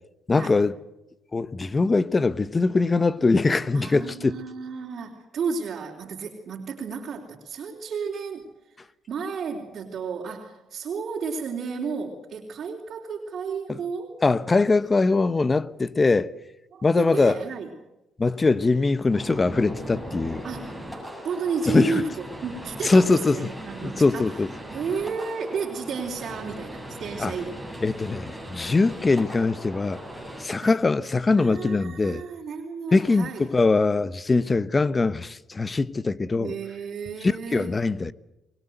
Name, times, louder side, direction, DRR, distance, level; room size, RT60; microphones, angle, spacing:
voice 1, 0.3-0.7 1.3-4.4 13.7-13.8 14.2-16.3 16.8-17.4 18.2-20.4 21.7-22.0 22.8-23.5 23.8-24.5 27.2-27.3 27.8-30.0 30.4-32.2 32.9-36.5 37.5-38.1, left 3 dB, 25° left, 1.0 m, -22 dB
voice 2, 3.7-14.2 16.7-17.7 20.4-20.8 21.2-24.4 24.7-27.7 30.6-30.9 31.4-33.5 36.3-37.8, right 5 dB, 60° right, 3.7 m, -32 dB
sound 1, 19.1-30.4, equal, 5° left, 7.7 m, -39 dB
24.0 x 21.0 x 8.0 m
cardioid pair, 90°, 0 cm